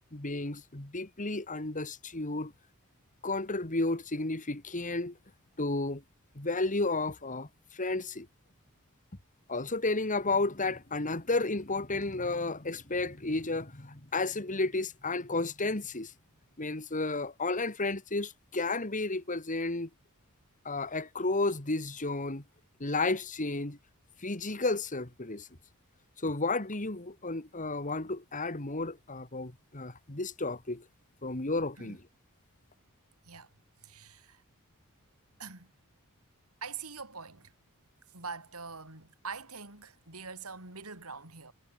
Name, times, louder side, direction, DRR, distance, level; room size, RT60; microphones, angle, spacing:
voice 1, 0.1-2.5 3.2-5.2 5.6-6.0 6.3-8.3 9.5-16.1 16.6-19.9 20.6-22.4 22.8-23.8 24.2-25.5 26.2-30.8 31.2-32.0, left 2 dB, 35° left, 2.5 m, -32 dB
voice 2, 33.8-34.4 35.4-35.7 36.6-37.5 38.1-41.5, right 5 dB, 80° right, 7.2 m, -44 dB
head